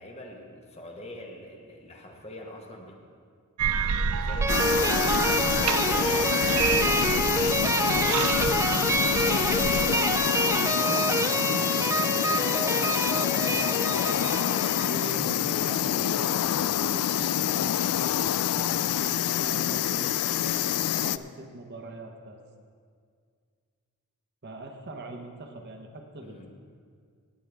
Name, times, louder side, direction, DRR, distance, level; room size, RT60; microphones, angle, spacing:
voice 1, 0.0-3.0 4.2-9.1 26.2-26.5, left 1 dB, 30° left, 1 dB, 1.2 m, -45 dB
sound 1, 3.6-9.8, right 6 dB, 80° right, 0.6 m, -30 dB
sound 2, 4.4-15.1, right 2 dB, 15° right, 0.3 m, -28 dB
sound 3, 4.5-21.2, left 10 dB, 85° left, 0.3 m, -26 dB
voice 2, 10.6-13.7 14.8-16.4 16.8-18.0 18.5-22.4 24.4-26.5, right 1 dB, 50° right, 3 dB, 1.0 m, -41 dB
18.5 x 8.1 x 3.5 m, 2.1 s
head